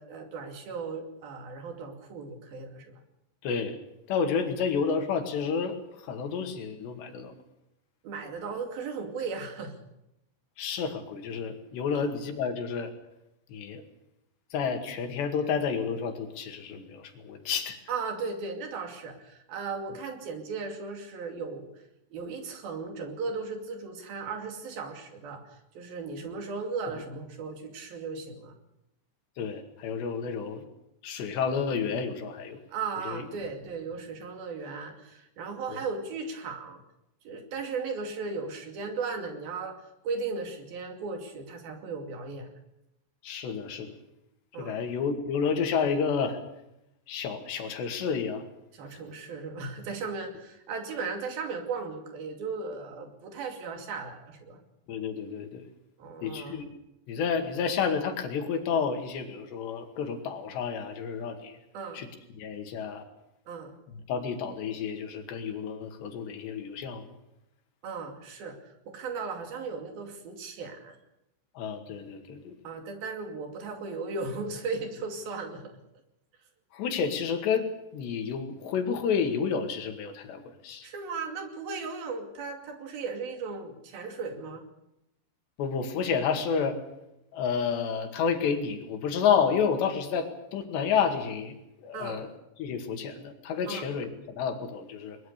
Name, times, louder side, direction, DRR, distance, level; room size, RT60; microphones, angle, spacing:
voice 1, 0.0-2.9 8.0-9.7 11.9-12.1 17.9-21.7 22.1-25.4 25.8-28.5 32.7-36.8 37.2-39.8 40.0-42.5 44.5-44.8 48.7-54.6 56.0-56.6 61.7-62.0 63.5-63.8 67.8-71.0 72.6-75.7 80.8-84.6 91.9-92.2 93.7-93.9, right 4 dB, 60° right, 4 dB, 4.3 m, -36 dB
voice 2, 3.4-3.8 4.1-7.3 10.6-12.9 13.5-13.9 14.5-17.8 29.4-30.6 31.0-32.6 33.0-33.3 35.7-35.9 43.2-44.0 44.6-46.4 47.1-48.4 54.9-55.7 56.2-56.7 57.1-61.6 61.9-62.1 62.3-63.0 63.9-67.1 71.6-72.6 76.7-80.9 85.6-86.8 87.3-92.3 92.6-95.2, left 6 dB, 85° left, 5 dB, 4.3 m, -30 dB
22.0 x 21.5 x 6.7 m, 0.87 s
omnidirectional pair, 4.8 m